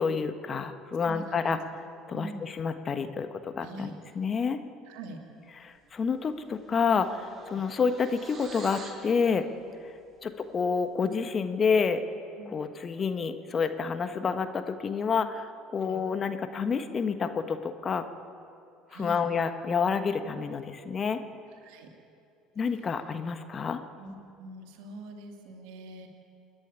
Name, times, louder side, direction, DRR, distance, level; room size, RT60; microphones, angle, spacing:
voice 1, 0.0-1.6 2.1-4.6 5.6-9.5 10.2-12.0 12.5-18.0 18.9-21.2 22.6-23.8, left 5 dB, 35° left, 9 dB, 1.4 m, -29 dB
voice 2, 1.0-1.5 2.1-2.5 3.6-4.0 4.9-5.2 12.4-12.7 15.8-16.0 18.9-19.3 21.6-21.9 24.0-26.1, right 1 dB, 65° right, 4 dB, 2.6 m, -43 dB
sound 1, 5.9-6.1 6.4-9.1, right 3 dB, 35° right, 5.2 m, -47 dB
28.5 x 10.5 x 9.7 m, 2.6 s
figure-of-eight pair, 65°, 0 cm